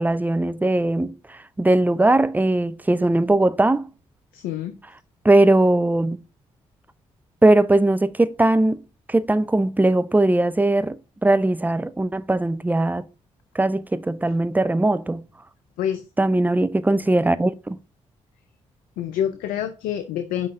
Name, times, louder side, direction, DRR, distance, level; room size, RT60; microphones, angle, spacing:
voice 1, 0.0-3.9 5.2-6.2 7.4-8.8 9.1-13.1 13.5-15.3 16.2-17.8, right 2 dB, 10° right, 0.6 m, -20 dB
voice 2, 4.3-4.8 15.8-16.0 19.0-20.5, left 10 dB, 80° left, 0.5 m, -27 dB
6.2 x 3.8 x 5.4 m
hypercardioid pair, 45°, 14 cm